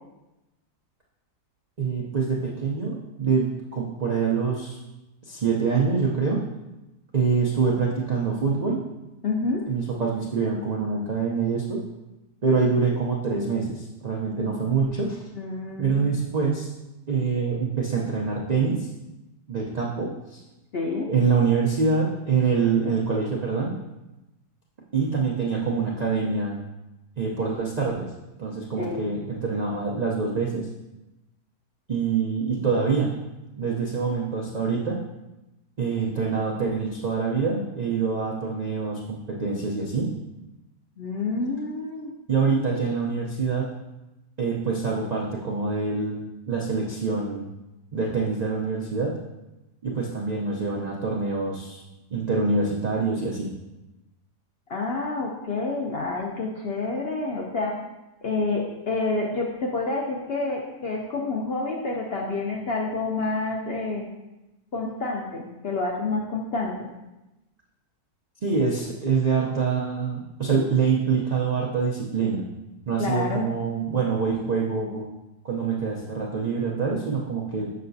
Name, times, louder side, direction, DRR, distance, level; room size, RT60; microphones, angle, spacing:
voice 1, 1.8-4.8 5.2-6.4 7.1-8.8 9.7-11.8 12.4-15.2 15.8-16.7 17.1-18.9 19.5-20.4 21.1-23.8 24.9-26.6 27.2-28.1 28.4-30.7 31.9-33.1 33.6-35.0 35.8-40.1 42.3-43.7 44.4-47.5 47.9-49.2 49.8-51.8 52.1-53.5 68.4-72.4 72.9-75.1 75.4-77.7, right 5 dB, 80° right, -3 dB, 0.3 m, -25 dB
voice 2, 9.2-9.6 15.3-16.1 20.7-21.1 28.7-29.1 41.0-42.1 54.7-57.8 58.2-64.0 64.7-66.9 73.0-73.5, left 3 dB, 65° left, -1 dB, 0.6 m, -28 dB
6.5 x 5.6 x 2.6 m, 0.99 s
omnidirectional pair, 1.7 m